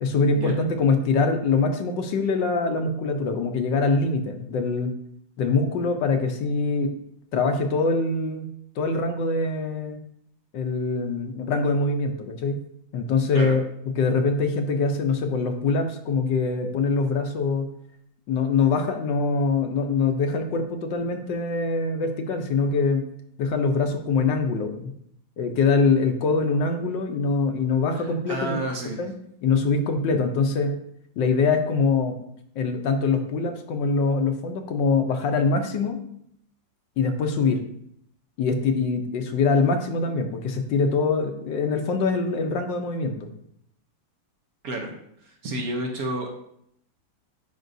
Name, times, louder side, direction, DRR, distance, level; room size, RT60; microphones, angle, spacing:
voice 1, 0.0-4.9 5.4-6.9 7.3-8.5 8.8-10.0 10.5-12.6 12.9-13.6 14.0-17.7 18.3-23.0 23.4-24.9 25.4-28.6 29.0-29.1 29.4-30.7 31.2-32.1 32.6-36.0 37.0-37.6 38.4-43.3, left 4 dB, 75° left, 5 dB, 1.4 m, -23 dB
voice 2, 27.9-29.0 44.6-44.9 45.2-46.3, right 1 dB, 60° right, 2 dB, 1.2 m, -30 dB
9.1 x 5.3 x 2.7 m, 0.71 s
omnidirectional pair, 2.0 m